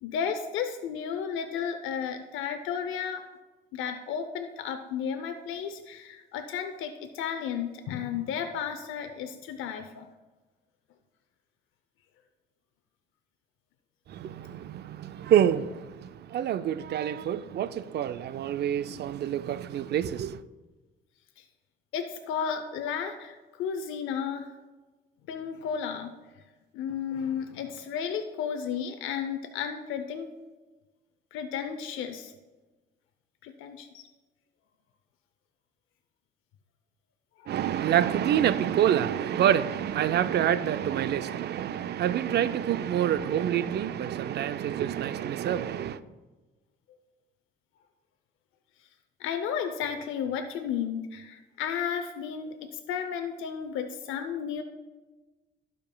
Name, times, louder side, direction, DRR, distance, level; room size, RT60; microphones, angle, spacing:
voice 1, 0.0-3.3 3.7-10.1 21.4-21.5 21.9-24.5 25.3-26.1 26.7-30.3 31.3-32.3 33.4-34.0 37.4-37.5 49.2-54.6, left 7 dB, 90° left, 0.6 m, -33 dB
voice 2, 14.1-20.4 37.5-46.0, right 10 dB, 55° right, 0.4 m, -27 dB
14.5 x 5.2 x 2.2 m
cardioid pair, 90°, 20 cm